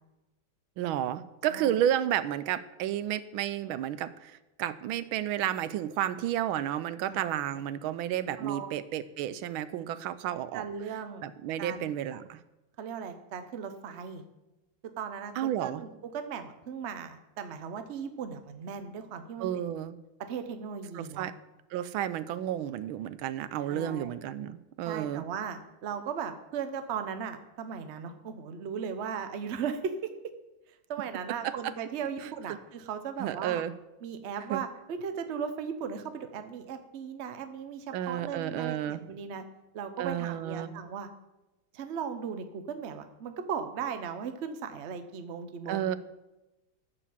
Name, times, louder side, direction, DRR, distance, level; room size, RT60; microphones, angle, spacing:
voice 1, 0.8-10.6 11.2-12.4 15.4-15.8 19.4-20.0 20.9-21.3 21.7-25.3 31.4-31.5 33.2-33.7 34.5-34.6 37.9-39.0 40.0-40.7 45.7-46.0, right 11 dB, 90° right, 14 dB, 1.4 m, -31 dB
voice 2, 8.4-8.7 10.5-11.3 11.6-12.0 12.8-14.2 15.0-19.8 20.2-21.3 23.6-24.1 24.9-30.1 30.9-33.6 34.0-39.4 39.7-41.1 41.7-46.0, right 7 dB, 50° right, 8 dB, 0.8 m, -37 dB
9.6 x 7.0 x 7.2 m, 1.0 s
omnidirectional pair, 2.2 m